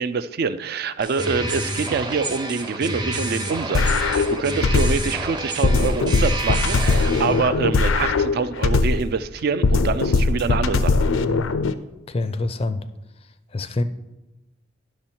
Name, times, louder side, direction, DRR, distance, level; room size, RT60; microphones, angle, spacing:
voice 1, 0.0-11.1, right 5 dB, 50° right, 0.4 m, -25 dB
sound 1, 1.0-7.5, right 2 dB, 25° right, 0.7 m, -29 dB
sound 2, 3.7-5.2 5.6-9.2 9.6-11.7, left 3 dB, 90° left, 0.5 m, -20 dB
voice 2, 12.1-12.8 13.5-13.8, left 2 dB, 30° left, 0.4 m, -25 dB
10.0 x 6.2 x 4.4 m
head